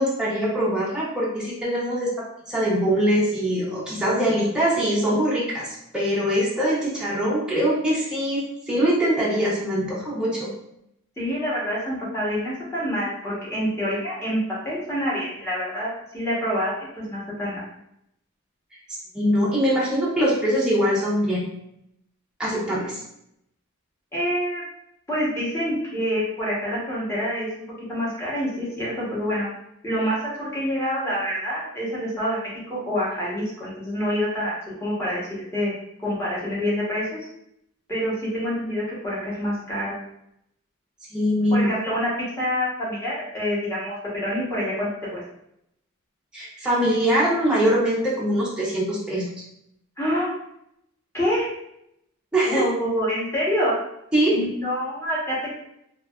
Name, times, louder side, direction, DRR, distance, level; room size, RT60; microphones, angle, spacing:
voice 1, 0.0-10.5 19.1-21.5 22.4-23.0 41.1-41.7 46.3-49.3 52.3-52.7 54.1-54.4, equal, 5° right, -7 dB, 0.4 m, -23 dB
voice 2, 11.2-14.4 14.6-16.8 17.1-17.6 24.1-24.6 25.1-27.6 27.9-29.5 29.8-32.4 32.7-35.7 36.0-37.2 37.9-40.0 41.5-42.1 42.4-44.0 44.2-45.2 50.0-50.3 51.1-51.5 52.5-53.8 54.3-55.6, equal, 10° left, -7 dB, 0.8 m, -26 dB
2.6 x 2.3 x 2.2 m, 0.78 s
head